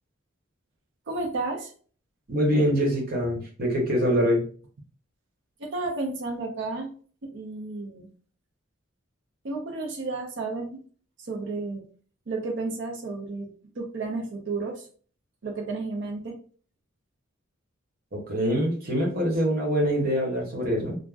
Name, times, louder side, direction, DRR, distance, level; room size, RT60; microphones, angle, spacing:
voice 1, 1.1-1.7 5.6-6.9 7.2-8.1 9.4-10.8 11.2-11.8 12.3-14.9 15.4-16.4, right 3 dB, 60° right, 1 dB, 0.6 m, -32 dB
voice 2, 2.3-4.4 18.1-21.0, equal, 45° right, -1 dB, 1.1 m, -24 dB
3.5 x 2.1 x 2.4 m, 0.43 s
head